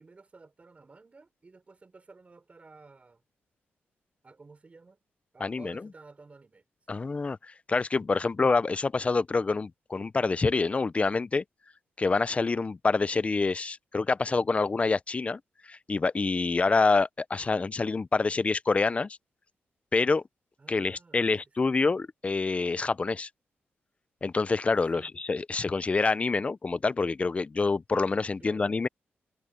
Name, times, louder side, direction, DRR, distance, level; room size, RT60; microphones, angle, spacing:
voice 1, 0.0-3.2 4.2-5.0 5.3-7.0 8.2-8.3 20.6-21.2 21.6-21.7 24.9-25.1 28.4-28.7, right 3 dB, 30° right, 3.9 m, -53 dB
voice 2, 5.4-5.8 6.9-7.4 7.7-11.4 12.0-15.4 15.7-19.2 19.9-20.2 20.7-23.3 24.2-28.9, left 4 dB, 30° left, 0.5 m, -26 dB
cardioid pair, 100°, 4 cm